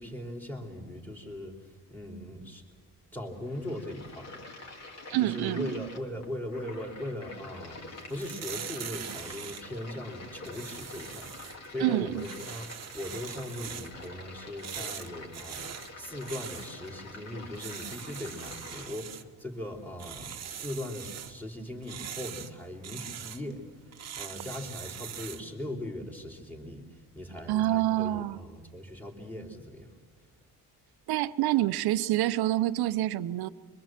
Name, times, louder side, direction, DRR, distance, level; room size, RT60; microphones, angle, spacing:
voice 1, 0.0-2.6 3.1-4.4 5.2-7.8 8.1-12.6 12.9-29.9, left 1 dB, 5° left, 3.4 m, -39 dB
sound 1, 3.3-18.9, left 2 dB, 40° left, 3.2 m, -47 dB
voice 2, 5.1-5.9 11.8-12.2 27.5-28.4 31.1-33.5, right 15 dB, 75° right, 0.8 m, -27 dB
sound 2, 7.9-25.5, right 9 dB, 40° right, 1.2 m, -43 dB
25.5 x 23.5 x 7.5 m
cardioid pair, 140°, 38 cm